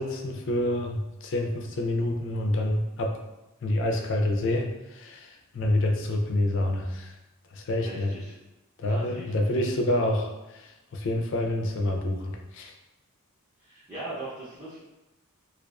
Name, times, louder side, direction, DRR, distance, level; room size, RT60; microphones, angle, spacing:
voice 1, 0.0-3.2 3.6-7.1 7.5-8.1 8.8-12.7, left 1 dB, 55° left, 2 dB, 0.3 m, -27 dB
voice 2, 7.8-8.4 8.9-9.5 13.6-14.8, right 1 dB, 15° right, -11 dB, 0.5 m, -39 dB
2.3 x 2.3 x 2.3 m, 0.98 s
head